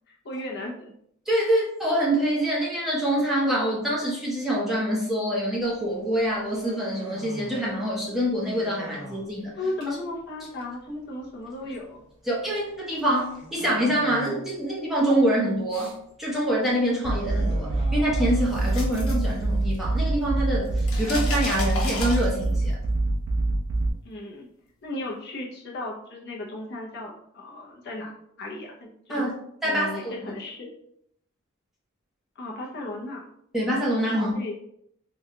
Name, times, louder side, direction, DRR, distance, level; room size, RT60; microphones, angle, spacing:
voice 1, 0.1-0.9 8.9-9.1 9.5-12.0 24.0-24.5 24.8-28.1 28.4-29.2 29.6-30.7 32.4-33.3 34.1-34.6, left 2 dB, 50° left, -2 dB, 0.7 m, -35 dB
voice 2, 1.3-9.5 12.3-22.8 29.1-29.3 29.6-30.1 33.5-34.3, right 1 dB, ahead, -6 dB, 0.8 m, -25 dB
Human voice, 5.6-20.8, equal, 90° right, 1.2 m, -44 dB
sound 1, 17.0-23.9, right 2 dB, 65° right, 0.5 m, -25 dB
sound 2, 18.3-20.0 20.3-22.7, left 2 dB, 75° left, 0.9 m, -34 dB
3.8 x 2.3 x 2.8 m, 0.70 s
head